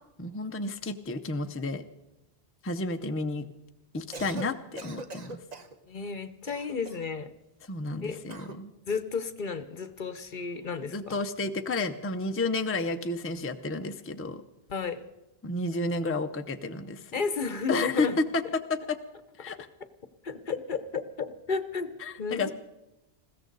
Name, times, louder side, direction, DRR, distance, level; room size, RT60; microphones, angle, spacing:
voice 1, 0.2-1.8 2.6-3.5 3.9-5.4 7.6-8.7 10.9-14.4 15.4-17.1 17.7-19.0 19.4-19.7 22.0-22.5, left 2 dB, 15° left, 7 dB, 0.6 m, -31 dB
Cough, 4.0-4.5 4.8-5.8 6.5-7.1 8.3-8.6, right 2 dB, 40° right, 1.0 m, -42 dB
voice 2, 5.9-7.3 8.0-8.2 8.9-11.0 14.7-15.0 17.1-18.1 20.2-21.9 22.2-22.5, left 5 dB, 55° left, 12 dB, 0.9 m, -32 dB
20.5 x 16.0 x 4.0 m, 0.96 s
omnidirectional pair, 1.1 m